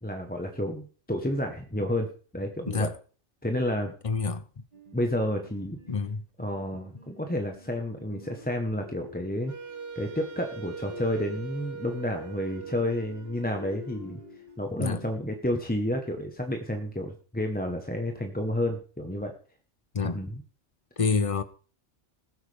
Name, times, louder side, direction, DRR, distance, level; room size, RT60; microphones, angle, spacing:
voice 1, 0.0-2.1 2.3-2.9 3.4-3.9 4.9-5.8 6.4-9.5 9.9-14.2 14.6-19.3 20.0-20.4, left 1 dB, 10° left, 0.9 m, -30 dB
voice 2, 4.0-4.4 5.9-6.2 14.8-15.0 19.9-20.2 21.0-21.4, left 5 dB, 35° left, 0.6 m, -27 dB
sound 1, 4.7-14.6, left 2 dB, 30° right, 1.9 m, -50 dB
Wind instrument woodwind instrument, 9.5-14.4, right 6 dB, 60° right, 1.6 m, -42 dB
19.5 x 8.1 x 3.4 m
omnidirectional pair, 1.2 m